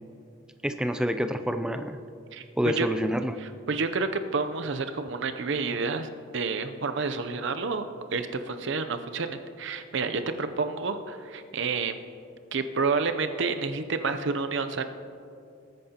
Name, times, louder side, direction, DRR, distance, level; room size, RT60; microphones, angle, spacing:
voice 1, 0.6-2.0 2.6-3.4, equal, 5° right, 8 dB, 0.3 m, -27 dB
voice 2, 2.3-2.9 3.7-7.8 8.1-12.0 12.5-14.8, right 4 dB, 55° right, 9 dB, 0.6 m, -29 dB
19.0 x 8.9 x 2.9 m, 2.5 s
head